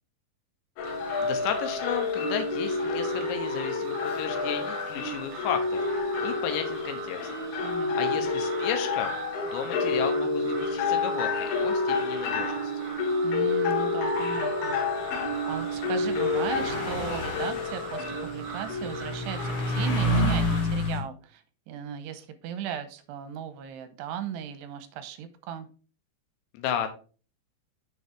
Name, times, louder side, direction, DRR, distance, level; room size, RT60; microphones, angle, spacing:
sound 1, 0.8-20.3, left 3 dB, 70° left, 3.2 m, -29 dB
sound 2, 0.8-20.6, right 4 dB, 55° right, 2.5 m, -43 dB
voice 1, 0.9-7.3 7.6-9.1 9.5-12.7 26.5-26.9, left 9 dB, 90° left, 7 dB, 3.2 m, -34 dB
voice 2, 7.6-8.3 13.2-14.9 15.5-25.7, right 9 dB, 80° right, 10 dB, 2.8 m, -37 dB
sound 3, 15.3-15.4 15.9-21.0, left 1 dB, 55° left, 2.7 m, -29 dB
6.9 x 6.5 x 3.5 m, 0.37 s
omnidirectional pair, 5.0 m